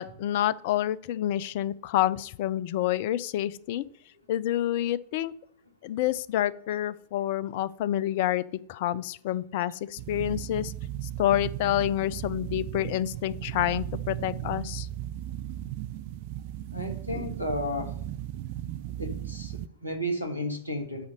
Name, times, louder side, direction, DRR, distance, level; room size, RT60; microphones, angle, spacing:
voice 1, 0.0-3.8 4.3-5.3 5.8-8.4 8.7-10.7 11.2-14.9, left 12 dB, 50° left, 19 dB, 0.5 m, -28 dB
sound 1, 10.0-19.7, right 12 dB, 50° right, 0.4 m, -36 dB
voice 2, 16.7-17.9 19.0-21.1, equal, 85° right, 6 dB, 1.5 m, -33 dB
7.8 x 5.1 x 6.5 m, 0.65 s
figure-of-eight pair, 90°, 0 cm